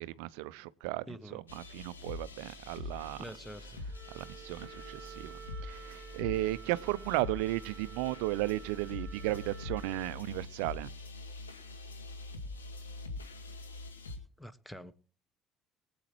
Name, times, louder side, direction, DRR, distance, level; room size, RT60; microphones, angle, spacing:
voice 1, 0.0-1.1 1.3-3.2 4.1-5.3 5.6-10.9, right 17 dB, 70° right, 0.5 m, -35 dB
voice 2, 1.1-1.4 2.4-2.9 3.2-3.8 14.4-14.9, equal, 5° left, 1.3 m, -47 dB
sound 1, 1.5-14.2, left 2 dB, 85° left, 2.1 m, -44 dB
Wind instrument woodwind instrument, 3.9-10.2, right 8 dB, 30° right, 1.7 m, -52 dB
24.5 x 8.7 x 3.1 m
figure-of-eight pair, 55°, 0 cm